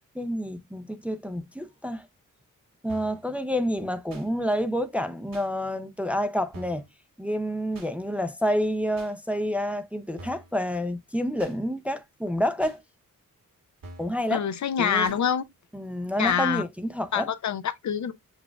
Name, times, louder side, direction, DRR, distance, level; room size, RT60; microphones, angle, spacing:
voice 1, 0.1-2.1 2.8-6.8 7.2-12.8 14.0-14.5 14.8-15.1 15.7-17.3, equal, 5° right, 0.4 m, -28 dB
sound 1, 2.9-3.2 4.1-4.3 5.3-5.5 6.5-6.9 7.7-7.9 9.0-9.1 10.2-10.5 11.4-11.6 12.6-12.8 13.8-14.2 15.0-15.2 16.2-16.4, right 1 dB, 85° right, 1.8 m, -45 dB
voice 2, 14.3-15.5 16.2-16.6 17.1-18.1, left 8 dB, 60° left, 0.5 m, -26 dB
7.0 x 2.4 x 2.3 m
cardioid pair, 90°, 33 cm